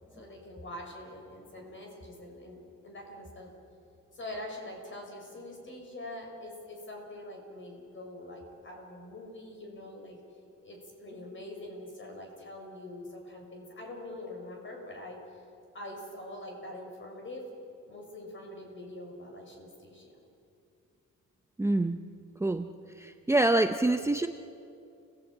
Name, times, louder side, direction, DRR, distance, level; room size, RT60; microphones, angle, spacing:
voice 1, 0.2-3.5 4.1-10.2 10.6-15.2 15.7-17.5 17.9-20.1, left 1 dB, 40° left, 1 dB, 6.5 m, -44 dB
voice 2, 21.6-22.0 22.4-22.7 23.0-24.3, right 2 dB, 10° right, 6 dB, 0.7 m, -26 dB
29.5 x 18.0 x 9.1 m, 2.5 s
cardioid pair, 140°, 31 cm